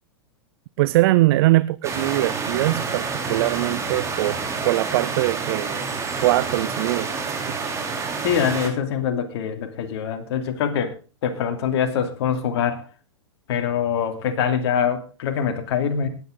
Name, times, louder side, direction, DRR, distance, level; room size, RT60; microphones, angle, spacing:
voice 1, 0.8-5.9 6.2-7.1, right 18 dB, 55° right, 0.5 m, -21 dB
sound 1, 1.8-8.7, right 4 dB, 20° right, 3.4 m, -28 dB
voice 2, 8.2-10.9 11.2-12.8 13.5-16.1, left 8 dB, 60° left, 3.0 m, -24 dB
19.0 x 9.2 x 3.9 m
hypercardioid pair, 115°, 15 cm